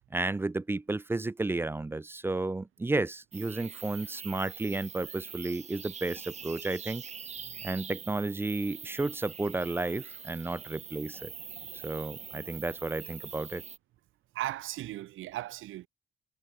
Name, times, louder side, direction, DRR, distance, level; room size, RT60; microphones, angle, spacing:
voice 1, 0.1-7.0 7.6-11.3 11.7-13.6, right 2 dB, 10° right, 0.3 m, -32 dB
sound 1, 3.3-13.8, right 6 dB, 35° right, 0.8 m, -44 dB
sound 2, 6.3-12.9, right 9 dB, 60° right, 5.7 m, -61 dB
voice 2, 14.3-15.9, right 15 dB, 85° right, 2.1 m, -37 dB
cardioid pair, 90°, 20 cm